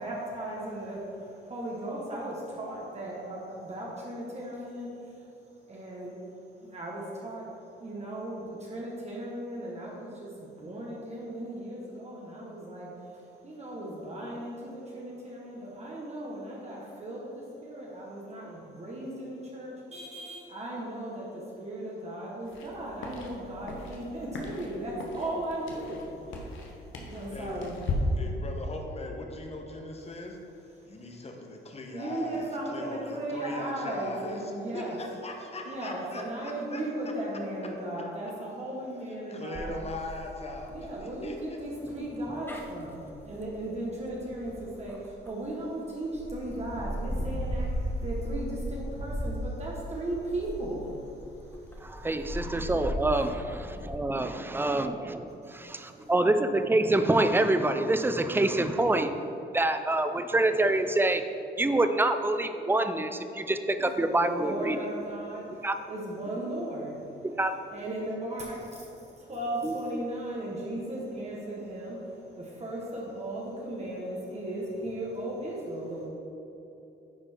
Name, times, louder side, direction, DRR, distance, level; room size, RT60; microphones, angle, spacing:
voice 1, 0.0-5.3 5.7-6.2 6.6-7.5 7.8-26.1 26.3-27.8 31.9-35.0 35.7-39.8 40.7-52.0 55.4-56.1 63.8-67.3 67.7-76.1, right 1 dB, 35° right, -4 dB, 1.5 m, -37 dB
sound 1, 22.5-28.0, left 4 dB, 80° left, 1.2 m, -40 dB
voice 2, 28.1-30.4 30.9-36.8 39.3-41.6, left 2 dB, 30° left, 2 dB, 1.1 m, -40 dB
sound 2, 39.5-45.5 46.0-54.0, equal, 10° left, 0.9 m, -37 dB
voice 3, 51.8-59.2 59.5-61.2 61.6-64.8 65.6-65.8 67.2-67.5 69.6-69.8, right 2 dB, 10° right, 8 dB, 0.5 m, -26 dB
10.5 x 4.3 x 4.5 m, 2.9 s
cardioid pair, 90°, 20 cm